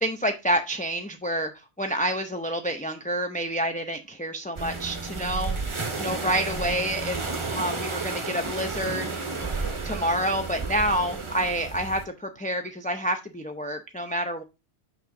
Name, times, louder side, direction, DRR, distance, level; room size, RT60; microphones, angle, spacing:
voice 1, 0.0-1.5 1.8-5.6 6.0-9.2 9.5-14.4, equal, 10° left, 5 dB, 0.4 m, -28 dB
sound 1, 4.6-12.0, right 3 dB, 25° right, 0.9 m, -32 dB
6.0 x 5.6 x 3.8 m, 0.26 s
omnidirectional pair, 1.2 m